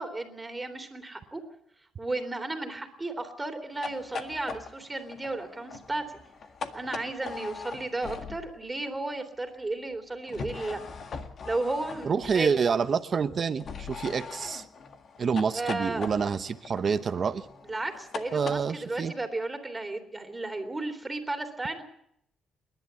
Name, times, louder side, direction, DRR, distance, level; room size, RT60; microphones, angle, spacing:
voice 1, 0.0-1.4 2.0-6.0 6.7-10.8 11.5-12.5 15.5-16.1 17.6-21.8, right 2 dB, 15° right, 6 dB, 3.5 m, -34 dB
sound 1, 3.7-8.7 10.3-12.5 13.6-18.6, left 5 dB, 50° left, 1.8 m, -41 dB
voice 2, 12.0-14.6 15.2-17.5 18.3-19.1, right 6 dB, 45° right, 11 dB, 0.9 m, -27 dB
28.5 x 11.5 x 8.3 m, 0.74 s
cardioid pair, 90°, 0 cm